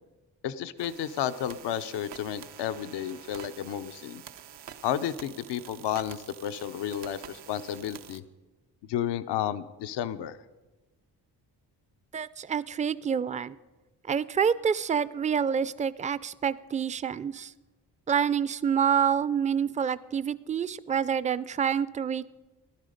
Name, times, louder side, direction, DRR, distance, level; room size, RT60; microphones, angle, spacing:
voice 1, 0.4-4.2 4.8-8.2 8.9-10.4, left 10 dB, 90° left, 12 dB, 0.6 m, -32 dB
sound 1, 0.8-8.2, right 9 dB, 90° right, 0.8 m, -47 dB
voice 2, 12.1-13.5 14.1-17.5 18.1-22.3, right 7 dB, 20° right, 18 dB, 0.4 m, -27 dB
15.0 x 11.5 x 5.1 m, 1.1 s
cardioid pair, 70°, 40 cm